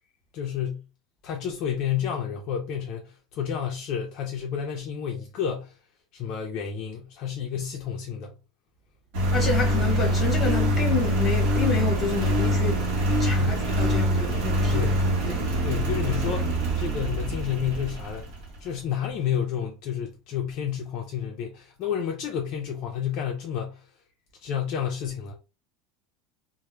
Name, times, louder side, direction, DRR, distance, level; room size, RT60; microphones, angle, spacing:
voice 1, 0.3-0.8 1.2-5.7 6.1-8.3 13.4-13.7 14.7-15.0 15.6-18.3 18.6-23.9 24.4-25.3, left 8 dB, 40° left, 0.4 m, -30 dB
Engine, 9.1-18.6, equal, 60° right, 0.9 m, -24 dB
voice 2, 9.3-12.8 13.2-14.7 15.2-15.7, left 4 dB, 15° left, 0.9 m, -29 dB
2.1 x 2.0 x 3.0 m
supercardioid pair, 165°, 0 cm